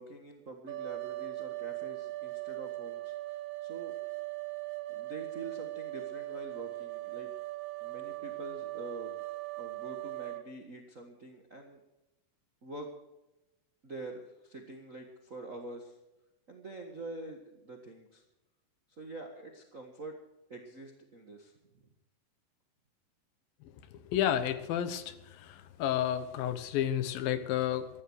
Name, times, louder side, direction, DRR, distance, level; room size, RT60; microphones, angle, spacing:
voice 1, 0.0-4.0 4.9-7.3 7.8-9.2 9.6-11.8 12.6-13.0 13.8-16.0 16.5-18.2 18.9-20.2 20.5-21.8, right 2 dB, 50° right, 3 dB, 0.9 m, -46 dB
sound 1, 0.7-10.4, right 19 dB, 75° right, 1.9 m, -39 dB
voice 2, 24.0-27.9, left 10 dB, 90° left, 12 dB, 2.9 m, -31 dB
14.5 x 11.5 x 6.4 m, 0.96 s
omnidirectional pair, 4.0 m